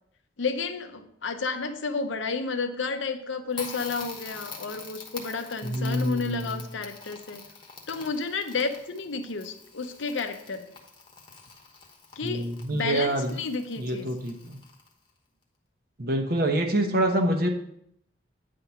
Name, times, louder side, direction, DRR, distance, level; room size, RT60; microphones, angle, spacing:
voice 1, 0.4-7.4 7.9-10.7 12.2-12.5 12.7-14.1, left 4 dB, 80° left, 7 dB, 0.8 m, -31 dB
Crackle, 3.5-15.1, left 4 dB, 25° left, 1.1 m, -45 dB
voice 2, 5.6-6.6 12.2-13.4 13.8-14.6 16.0-17.5, right 1 dB, 50° right, 4 dB, 1.0 m, -26 dB
9.4 x 3.8 x 5.6 m, 0.73 s
head